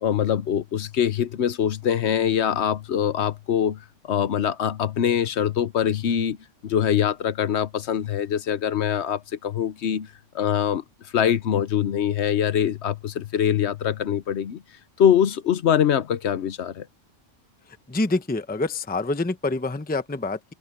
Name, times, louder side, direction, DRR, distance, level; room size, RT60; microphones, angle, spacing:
voice 1, 0.0-6.4 6.6-10.8 11.1-14.6 15.0-16.9, left 9 dB, 65° left, 1.0 m, -23 dB
voice 2, 17.9-20.5, left 2 dB, 10° left, 0.7 m, -26 dB
omnidirectional pair, 1.3 m